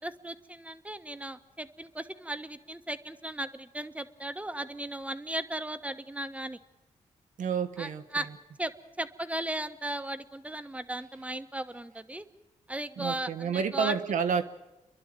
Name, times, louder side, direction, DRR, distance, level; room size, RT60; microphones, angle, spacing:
voice 1, 0.0-6.6 7.8-8.2 8.6-8.7 9.0-12.3 12.7-13.9, right 1 dB, 10° right, 10 dB, 1.3 m, -36 dB
voice 2, 7.4-8.4 13.0-14.5, right 6 dB, 85° right, 8 dB, 1.3 m, -30 dB
29.5 x 11.5 x 9.0 m, 0.98 s
cardioid pair, 65°, 13 cm